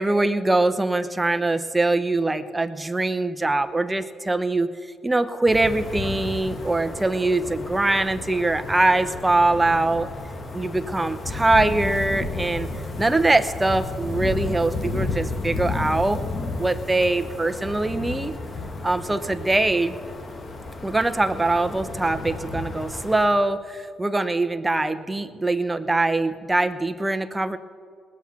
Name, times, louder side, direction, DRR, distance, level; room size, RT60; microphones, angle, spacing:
voice 1, 0.0-4.7 5.0-10.1 10.5-12.7 13.0-16.2 16.6-18.3 18.8-19.9 20.8-27.6, right 2 dB, 15° right, 9 dB, 0.8 m, -22 dB
sound 1, 5.5-23.3, left 3 dB, 40° left, 1.6 m, -32 dB
20.0 x 7.4 x 5.8 m, 2.1 s
cardioid pair, 90°, 0 cm